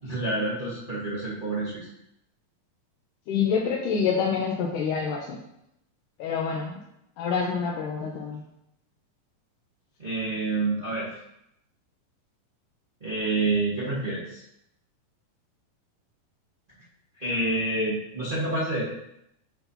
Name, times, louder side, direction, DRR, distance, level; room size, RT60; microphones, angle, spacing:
voice 1, 0.0-1.9 10.0-11.1 13.0-14.4 17.2-18.8, right 2 dB, 75° right, -8 dB, 0.4 m, -28 dB
voice 2, 3.3-5.4 6.2-6.8 7.2-8.4, left 6 dB, 75° left, -2 dB, 2.2 m, -27 dB
8.0 x 2.9 x 5.4 m, 0.81 s
omnidirectional pair, 4.0 m